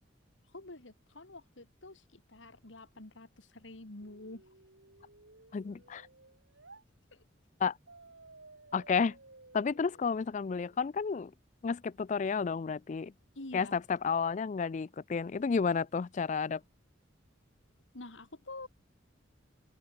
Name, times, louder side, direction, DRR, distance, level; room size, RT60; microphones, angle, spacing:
voice 1, 0.5-4.4 7.1-7.2 13.4-13.7 17.9-18.7, left 2 dB, 75° left, 2.3 m, -48 dB
sound 1, 4.0-6.8 7.9-10.9, right 2 dB, 85° right, 7.0 m, -57 dB
voice 2, 5.5-6.1 7.6-7.8 8.7-9.2 9.5-11.3 11.6-13.1 13.5-16.6, left 5 dB, 40° left, 0.3 m, -31 dB
open air
head